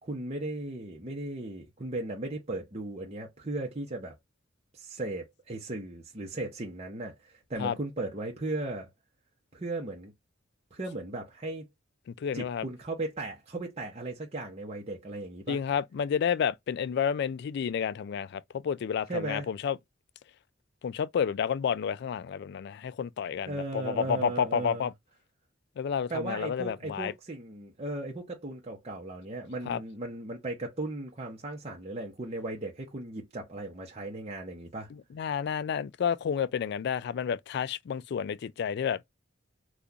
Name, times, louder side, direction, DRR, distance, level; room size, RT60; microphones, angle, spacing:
voice 1, 0.0-4.1 4.7-8.9 9.5-10.1 10.7-11.7 12.3-15.6 19.1-19.5 23.5-24.9 26.1-34.9, right 2 dB, 35° right, 0.8 m, -36 dB
voice 2, 12.2-12.7 15.5-19.8 20.8-24.9 25.8-27.1 29.7-29.8 34.9-39.0, left 7 dB, 60° left, 0.3 m, -30 dB
3.7 x 2.4 x 2.7 m
head